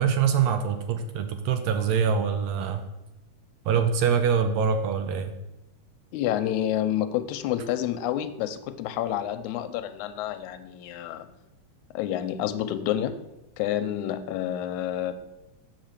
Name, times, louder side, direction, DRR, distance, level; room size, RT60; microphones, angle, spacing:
voice 1, 0.0-2.8 3.6-5.3, right 7 dB, 80° right, 7 dB, 1.5 m, -24 dB
voice 2, 6.1-11.3 11.9-13.2 13.6-15.2, left 11 dB, 80° left, 10 dB, 2.0 m, -29 dB
7.8 x 3.9 x 6.6 m, 0.97 s
omnidirectional pair, 3.5 m